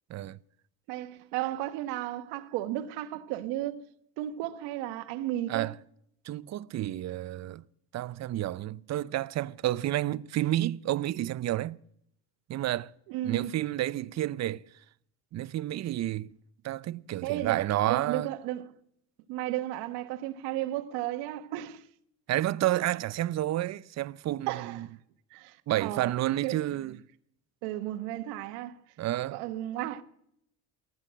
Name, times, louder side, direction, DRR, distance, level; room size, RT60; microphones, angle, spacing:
voice 1, 0.9-3.8 4.2-5.7 13.1-13.5 17.2-17.6 17.9-18.7 19.3-21.8 24.5-24.8 25.3-26.1 26.4-26.6 27.6-28.8 29.3-30.0, right 14 dB, 85° right, 1.2 m, -34 dB
voice 2, 6.3-7.6 7.9-11.8 12.5-12.9 13.2-14.6 15.3-16.3 16.6-18.3 22.3-24.9 25.7-27.0 29.0-29.4, right 14 dB, 40° right, 0.6 m, -30 dB
15.0 x 10.5 x 7.4 m
supercardioid pair, 100°, 40 cm